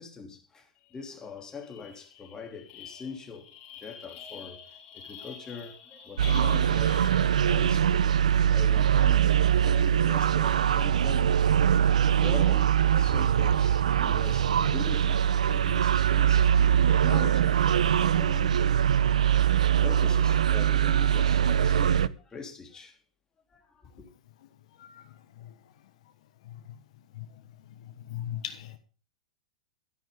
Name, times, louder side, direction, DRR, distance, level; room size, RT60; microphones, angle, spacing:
voice 1, 0.0-3.5 3.8-7.2 7.5-8.2 8.5-11.3 12.0-16.5 16.9-23.0 23.5-24.1, left 5 dB, 15° left, 3.2 m, -42 dB
sound 1, 0.9-1.1 1.4-7.8, left 8 dB, 40° left, 5.6 m, -47 dB
sound 2, 6.2-22.1, right 9 dB, 75° right, 0.5 m, -23 dB
voice 2, 28.1-28.8, left 11 dB, 60° left, 1.3 m, -37 dB
13.0 x 10.5 x 3.8 m
hypercardioid pair, 100°, 4 cm